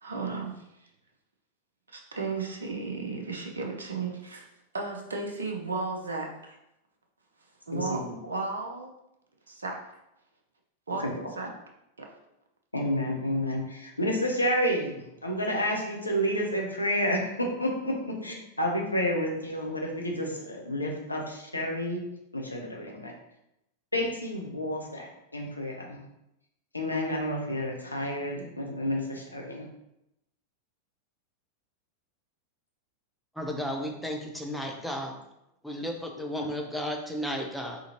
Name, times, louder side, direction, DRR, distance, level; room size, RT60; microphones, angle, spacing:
voice 1, 0.0-0.9 1.9-6.6 7.7-8.9 9.5-9.8 10.9-11.0 11.4-11.5 12.0-12.1, right 4 dB, 70° right, 2 dB, 0.7 m, -34 dB
voice 2, 7.7-8.1 11.0-11.3 12.7-22.0 22.3-23.1 23.9-26.0 26.7-29.6, equal, 85° left, 0 dB, 0.8 m, -30 dB
voice 3, 33.3-35.2 35.6-37.8, equal, ahead, 1 dB, 0.7 m, -33 dB
3.8 x 3.7 x 2.9 m, 0.84 s
figure-of-eight pair, 90°, 0 cm